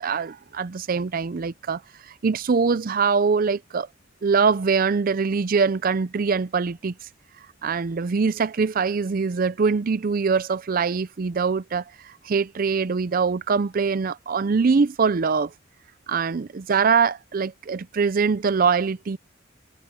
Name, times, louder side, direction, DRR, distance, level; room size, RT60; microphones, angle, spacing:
voice 1, 0.0-1.8 2.2-3.9 4.2-6.9 7.6-11.8 12.2-15.5 16.1-19.2, right 5 dB, 45° right, 0.5 m, -23 dB
head